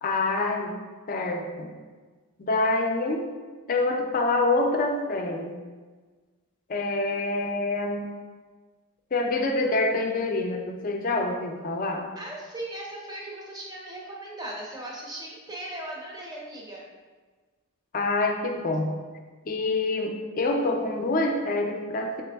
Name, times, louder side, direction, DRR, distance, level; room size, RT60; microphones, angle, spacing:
voice 1, 0.0-0.7 1.1-1.7 2.4-3.3 3.7-5.5 6.7-8.1 9.1-12.1 17.9-18.9 19.5-22.2, left 2 dB, 40° left, 3 dB, 0.4 m, -26 dB
voice 2, 12.2-16.8, right 1 dB, 20° right, -3 dB, 0.6 m, -38 dB
3.4 x 3.1 x 3.4 m, 1.4 s
head